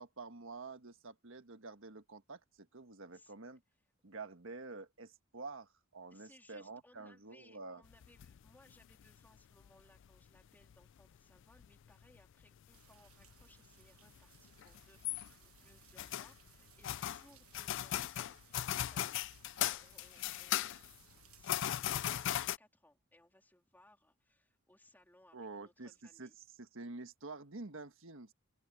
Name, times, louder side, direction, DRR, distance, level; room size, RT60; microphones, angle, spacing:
voice 1, 0.0-3.6 4.0-7.8 25.3-26.3 26.6-28.3, right 3 dB, 65° right, 1.5 m, -48 dB
voice 2, 6.1-19.2 19.6-20.9 21.4-26.4, left 1 dB, 10° left, 3.4 m, -66 dB
sound 1, 7.8-9.7 10.0-11.1 11.4-13.6 13.8-21.0 21.4-22.6, left 12 dB, 60° left, 0.3 m, -38 dB
sound 2, 12.7-22.4, right 11 dB, 85° right, 1.2 m, -65 dB
open air
head